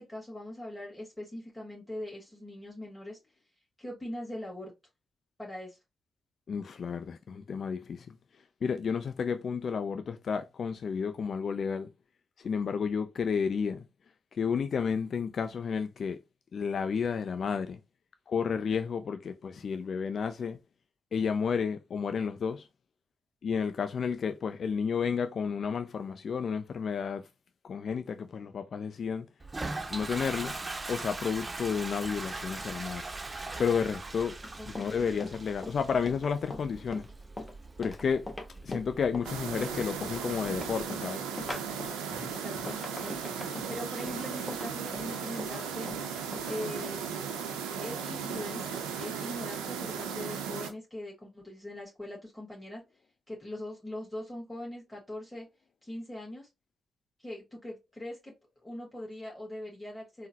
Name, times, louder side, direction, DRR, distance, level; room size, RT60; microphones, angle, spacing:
voice 1, 0.0-3.2 3.8-4.7 5.4-5.8 34.6-35.1 42.4-45.9 46.5-47.1 47.8-52.8 53.3-55.5 55.8-56.5 57.2-58.3 58.6-60.3, left 1 dB, 5° left, 1.5 m, -41 dB
voice 2, 6.5-8.2 8.6-11.9 12.4-13.9 14.3-16.2 16.5-17.8 18.3-20.6 21.1-22.7 23.4-27.3 27.6-29.3 29.9-30.6 30.9-33.0 33.6-34.4 34.7-37.1 37.8-38.3 38.6-41.2, left 6 dB, 60° left, 0.3 m, -31 dB
Toilet flush, 29.4-40.8, right 2 dB, 35° right, 0.5 m, -41 dB
Run, 34.4-46.6, left 2 dB, 30° left, 0.8 m, -42 dB
sound 1, 39.2-50.7, right 7 dB, 90° right, 0.4 m, -36 dB
3.7 x 2.0 x 2.7 m
hypercardioid pair, 40°, 0 cm